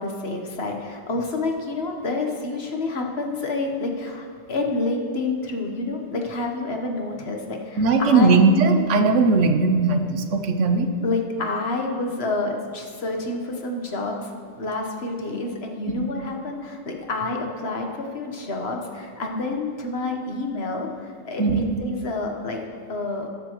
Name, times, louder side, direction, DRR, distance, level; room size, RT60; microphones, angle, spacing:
voice 1, 0.0-8.4 11.0-14.3 14.6-22.6 22.9-23.3, left 2 dB, 60° left, 2 dB, 1.4 m, -28 dB
voice 2, 7.8-10.9 16.0-16.1 21.4-21.7, right 4 dB, 85° right, 7 dB, 1.1 m, -18 dB
19.0 x 6.9 x 3.1 m, 2.3 s
omnidirectional pair, 1.2 m